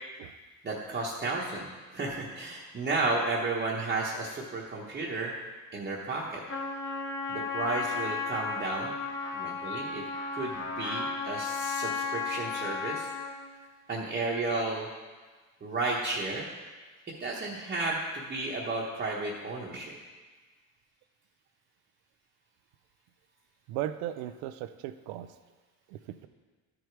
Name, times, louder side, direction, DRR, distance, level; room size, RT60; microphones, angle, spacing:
voice 1, 0.6-5.3 5.7-6.4 7.3-8.9 9.3-10.0 10.3-13.1 13.9-14.9 15.6-16.5 17.2-19.9, right 3 dB, 25° right, -4 dB, 1.1 m, -33 dB
Trumpet, 6.5-13.4, left 4 dB, 30° left, 1.2 m, -34 dB
voice 2, 23.7-25.3 25.9-26.3, right 12 dB, 90° right, 11 dB, 0.6 m, -37 dB
12.5 x 4.9 x 4.6 m, 1.4 s
cardioid pair, 125°, 37 cm